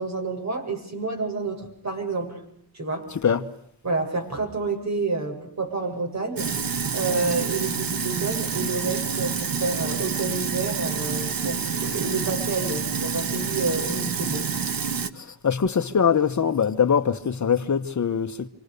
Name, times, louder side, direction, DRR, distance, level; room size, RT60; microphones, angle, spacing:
voice 1, 0.0-2.4 2.7-3.0 3.8-14.4, right 3 dB, 40° right, 7.9 m, -29 dB
Sink (filling or washing), 6.4-15.1, right 6 dB, 55° right, 1.7 m, -28 dB
voice 2, 15.2-18.5, left 7 dB, 45° left, 1.3 m, -22 dB
29.0 x 25.5 x 6.8 m
wide cardioid pair, 130°, 40 cm